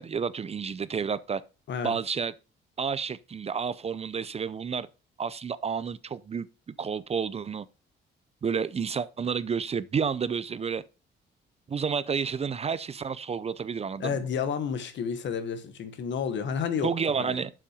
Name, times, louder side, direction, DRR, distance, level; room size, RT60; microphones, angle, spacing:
voice 1, 0.0-1.4 1.8-2.3 2.8-4.9 5.2-6.5 6.8-7.7 8.4-10.8 11.7-14.2 16.8-17.5, right 6 dB, 30° right, 0.5 m, -30 dB
voice 2, 14.0-17.4, left 7 dB, 70° left, 1.3 m, -31 dB
7.2 x 5.7 x 4.9 m
cardioid pair, 90°, 20 cm